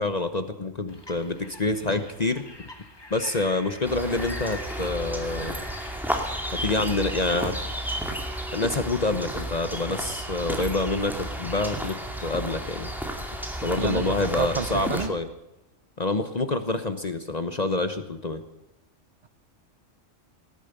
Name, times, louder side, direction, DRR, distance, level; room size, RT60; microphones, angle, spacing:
voice 1, 0.0-2.4 3.1-5.5 6.6-7.5 8.5-12.9 13.6-15.3 16.0-18.4, left 2 dB, 35° left, 9 dB, 1.0 m, -27 dB
sound 1, 0.9-8.5, left 1 dB, 20° left, 1.5 m, -44 dB
sound 2, 3.8-15.1, right 1 dB, ahead, 2.1 m, -32 dB
voice 2, 14.4-15.1, right 5 dB, 40° right, 13 dB, 0.7 m, -28 dB
17.5 x 11.0 x 6.7 m, 0.95 s
omnidirectional pair, 1.3 m